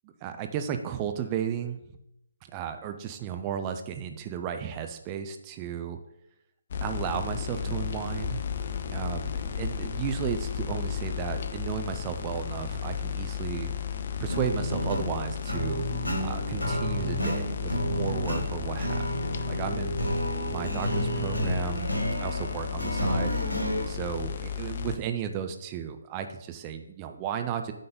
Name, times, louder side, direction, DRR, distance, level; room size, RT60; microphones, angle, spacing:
voice 1, 0.0-1.8 2.5-6.0 6.8-8.5 8.9-13.7 14.2-15.9 16.2-19.1 19.5-20.0 20.4-23.3 23.9-27.7, right 8 dB, 20° right, 7 dB, 0.6 m, -34 dB
sound 1, 6.7-25.0, left 8 dB, 40° left, 0.5 m, -34 dB
sound 2, 14.3-23.8, equal, 80° left, 3.3 m, -31 dB
9.0 x 3.9 x 5.1 m, 0.83 s
figure-of-eight pair, 145°, 0 cm